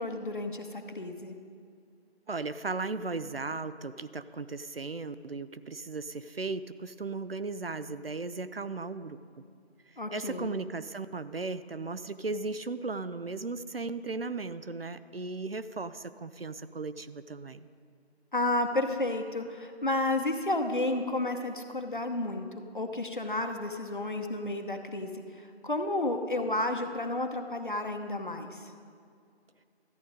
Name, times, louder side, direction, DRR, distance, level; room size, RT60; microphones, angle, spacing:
voice 1, 0.0-1.4 10.0-10.5 18.3-22.5 22.7-25.1 25.6-28.7, left 2 dB, 50° left, 6 dB, 0.9 m, -31 dB
voice 2, 2.3-9.2 10.1-17.7, right 3 dB, 60° right, 13 dB, 0.5 m, -36 dB
13.5 x 9.3 x 5.0 m, 2.3 s
figure-of-eight pair, 180°, 33 cm